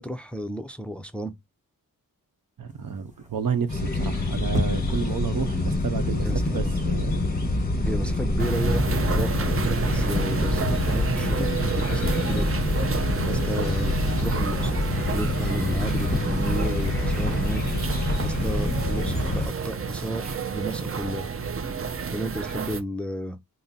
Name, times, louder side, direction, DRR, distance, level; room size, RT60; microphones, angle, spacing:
voice 1, 0.0-1.3 6.2-6.9 7.8-12.5 13.2-17.6 18.2-21.3 22.1-23.4, right 1 dB, 5° left, 0.4 m, -33 dB
voice 2, 2.6-7.1, right 6 dB, 75° right, 0.7 m, -30 dB
sound 1, 2.7-18.6, equal, 20° right, 1.1 m, -38 dB
sound 2, 3.7-19.5, left 2 dB, 25° left, 1.2 m, -26 dB
sound 3, 8.4-22.8, right 5 dB, 40° right, 0.6 m, -30 dB
3.7 x 2.0 x 4.1 m
wide cardioid pair, 95°, 35 cm